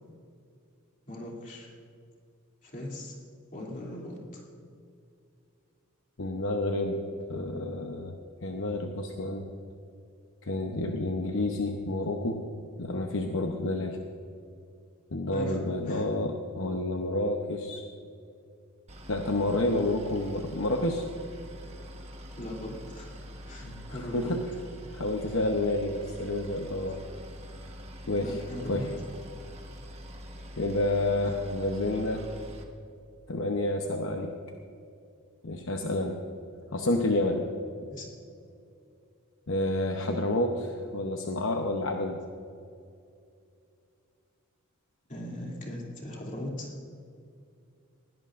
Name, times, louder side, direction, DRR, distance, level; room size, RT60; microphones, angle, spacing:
voice 1, 1.1-1.7 2.6-3.2 3.5-4.4 15.3-16.0 22.4-23.2 23.5-24.3 28.2-28.9 37.9-38.1 45.1-46.7, left 1 dB, 35° left, -2 dB, 2.9 m, -39 dB
voice 2, 6.2-7.0 7.3-9.5 10.4-12.4 12.8-14.0 15.1-17.8 19.1-21.0 23.6-24.5 24.9-27.0 28.1-28.4 28.7-28.9 30.6-32.3 33.3-34.3 35.4-36.2 36.7-37.5 39.5-42.2, left 2 dB, 60° left, 3 dB, 0.9 m, -29 dB
Boat Water vehicle, 18.9-32.6, equal, 30° right, 1.3 m, -45 dB
20.0 x 17.0 x 2.6 m, 2.5 s
head